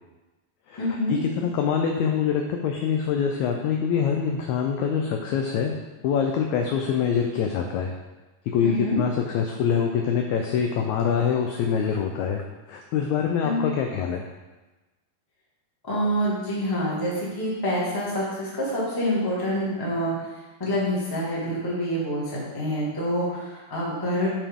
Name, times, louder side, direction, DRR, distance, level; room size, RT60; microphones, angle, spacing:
voice 1, 0.8-1.2 8.6-9.0 13.4-13.6 15.8-20.1 20.6-24.3, equal, 15° left, -7 dB, 0.8 m, -26 dB
voice 2, 1.4-5.8 6.0-7.9 8.5-12.4 12.7-14.2, left 7 dB, 85° left, 2 dB, 1.7 m, -25 dB
8.4 x 4.9 x 3.6 m, 1.2 s
omnidirectional pair, 3.9 m